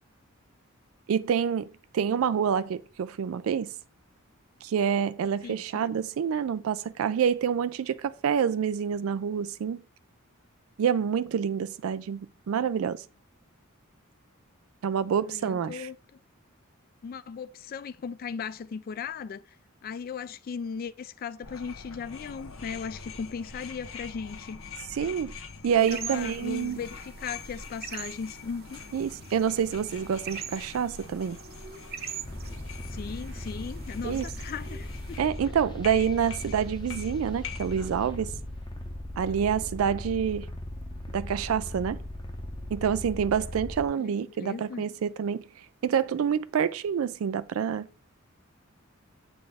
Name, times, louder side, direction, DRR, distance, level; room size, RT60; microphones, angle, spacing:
voice 1, 1.1-1.7 1.9-3.7 4.6-9.8 10.8-13.0 14.8-15.9 24.9-25.3 25.6-26.8 28.9-31.4 34.0-34.2 35.2-38.3 39.2-40.5 41.1-42.0 42.7-47.9, right 7 dB, 90° right, 0.4 m, -27 dB
voice 2, 5.4-6.0 15.2-16.0 17.0-19.4 19.8-24.6 25.8-28.8 32.9-35.5 43.9-44.1 44.4-44.8, left 6 dB, 45° left, 0.3 m, -37 dB
sound 1, 21.4-37.9, left 5 dB, 80° left, 1.0 m, -44 dB
sound 2, 25.8-35.2, right 8 dB, 50° right, 0.7 m, -44 dB
sound 3, 32.2-43.9, left 1 dB, 20° left, 0.7 m, -38 dB
7.6 x 4.1 x 3.4 m
head